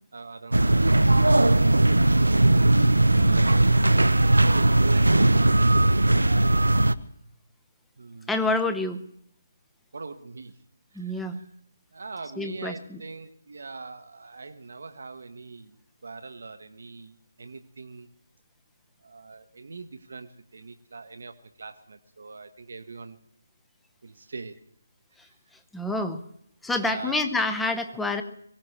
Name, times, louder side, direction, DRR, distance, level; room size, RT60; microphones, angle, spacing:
voice 1, 0.1-2.2 4.4-6.1 8.0-8.5 9.9-10.6 10.9-11.5 11.9-15.8 16.0-18.1 19.0-23.2 24.0-24.6 25.2-25.3 26.8-27.3, right 4 dB, 65° right, 8 dB, 1.0 m, -43 dB
sound 1, 0.5-6.9, right 2 dB, 85° right, 0.6 m, -19 dB
voice 2, 8.3-9.0 10.9-11.4 12.4-13.0 25.7-26.2 26.6-28.2, left 2 dB, 5° left, 7 dB, 0.8 m, -28 dB
23.0 x 16.5 x 3.2 m, 0.72 s
figure-of-eight pair, 145°, 0 cm